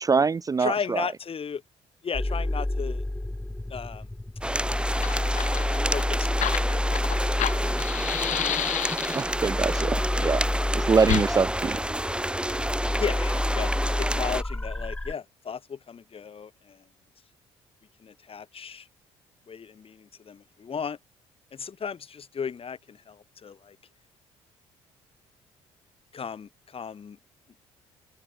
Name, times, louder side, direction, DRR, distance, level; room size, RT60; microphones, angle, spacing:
voice 1, 0.0-1.0 9.1-10.4 10.7-11.8, right 5 dB, 25° right, 0.5 m, -24 dB
voice 2, 0.6-1.6 2.0-3.0 3.7-4.1 5.9-6.3 6.6-7.0 9.8-9.9 13.0-16.8 18.0-18.9 19.5-21.0 21.5-23.8 26.1-27.2, left 6 dB, 45° left, 7.3 m, -35 dB
sound 1, 2.1-15.1, left 1 dB, 10° left, 1.2 m, -29 dB
sound 2, 4.4-14.4, right 1 dB, 5° right, 4.0 m, -30 dB
Fire, 4.5-4.6 4.9-9.4 11.0-11.3, left 13 dB, 70° left, 2.0 m, -30 dB
open air
supercardioid pair, 60°, 13 cm